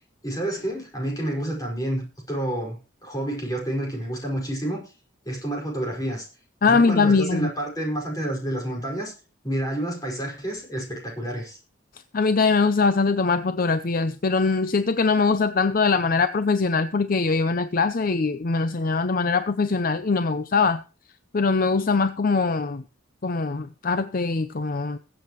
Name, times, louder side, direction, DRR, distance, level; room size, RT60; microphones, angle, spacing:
voice 1, 0.2-2.8 3.0-4.8 5.3-6.3 6.7-9.1 9.4-11.6, right 1 dB, 20° left, 5.3 m, -29 dB
voice 2, 6.6-7.5 12.1-20.8 21.3-22.8 23.2-25.0, left 4 dB, 45° left, 0.6 m, -22 dB
22.0 x 7.8 x 3.1 m
head